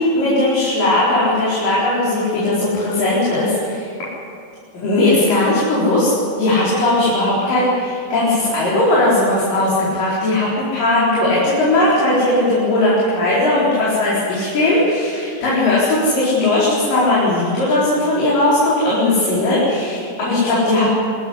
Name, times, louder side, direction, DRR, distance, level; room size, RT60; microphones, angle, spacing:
voice 1, 0.0-3.9 4.7-6.1 6.4-20.9, left 2 dB, 80° left, -8 dB, 6.3 m, -17 dB
25.0 x 13.5 x 9.9 m, 2.4 s
omnidirectional pair, 3.8 m